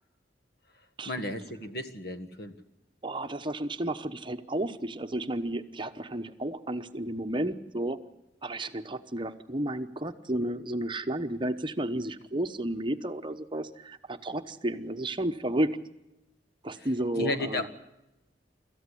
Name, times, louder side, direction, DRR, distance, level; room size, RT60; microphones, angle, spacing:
voice 1, 1.1-2.5 16.8-16.9 17.2-17.7, left 2 dB, 60° left, 9 dB, 1.8 m, -33 dB
voice 2, 3.0-8.0 8.4-15.7 16.6-17.7, right 1 dB, 25° right, 8 dB, 0.9 m, -32 dB
26.0 x 14.5 x 9.9 m, 0.96 s
head